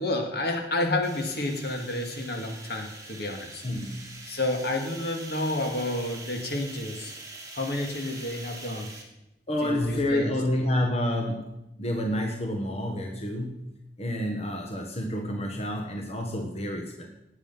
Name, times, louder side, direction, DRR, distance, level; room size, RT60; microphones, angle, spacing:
voice 1, 0.0-3.6 4.3-7.1 7.5-8.9 9.6-10.3, left 1 dB, 65° left, 3 dB, 2.1 m, -30 dB
sound 1, 1.0-9.0, right 2 dB, 20° right, 2.7 m, -43 dB
voice 2, 3.6-4.1 9.5-11.5 11.8-13.7 14.0-17.1, left 1 dB, 35° left, 2 dB, 1.6 m, -29 dB
18.0 x 8.2 x 5.6 m, 0.90 s
head